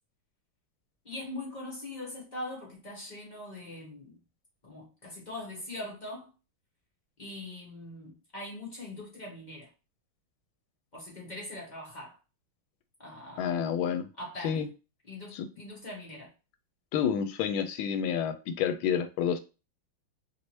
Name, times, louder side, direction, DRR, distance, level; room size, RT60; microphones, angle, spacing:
voice 1, 1.0-4.2 4.6-6.3 7.2-9.7 10.9-12.1 13.0-13.6 14.2-14.6 15.1-16.3, left 1 dB, 40° left, 0.6 m, -42 dB
voice 2, 13.4-14.1 14.4-14.7 15.3-15.5 16.9-19.4, left 8 dB, 80° left, 1.3 m, -29 dB
3.3 x 2.8 x 3.0 m
omnidirectional pair, 2.3 m